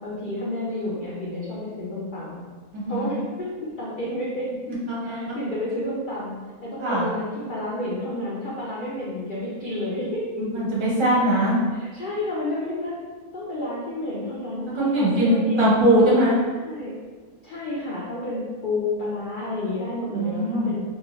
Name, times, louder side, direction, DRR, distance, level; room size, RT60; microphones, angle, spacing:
voice 1, 0.0-2.4 2.9-3.5 3.8-4.5 5.0-10.4 11.1-13.0 13.3-15.7 16.5-16.9 17.4-20.8, left 1 dB, 85° left, -6 dB, 0.4 m, -30 dB
voice 2, 2.7-3.1 5.1-5.4 6.8-7.0 10.4-11.6 14.7-16.4 20.1-20.7, right 1 dB, 30° right, -7 dB, 0.5 m, -21 dB
2.6 x 2.4 x 3.0 m, 1.5 s
omnidirectional pair, 1.5 m